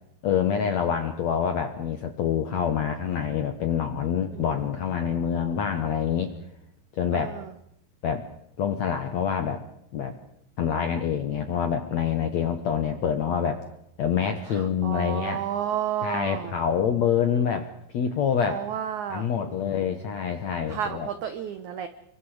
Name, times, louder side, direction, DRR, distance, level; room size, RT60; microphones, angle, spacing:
voice 1, 0.2-6.3 6.9-7.3 8.0-8.2 8.6-9.6 9.9-10.1 10.6-13.6 14.0-15.4 16.0-17.7 17.9-18.6 19.1-21.1, left 7 dB, 70° left, 7 dB, 1.7 m, -26 dB
voice 2, 7.1-7.5 14.5-16.5 18.5-19.9 20.7-21.9, right 9 dB, 85° right, 11 dB, 1.7 m, -32 dB
30.0 x 23.5 x 4.9 m, 0.75 s
omnidirectional pair, 4.9 m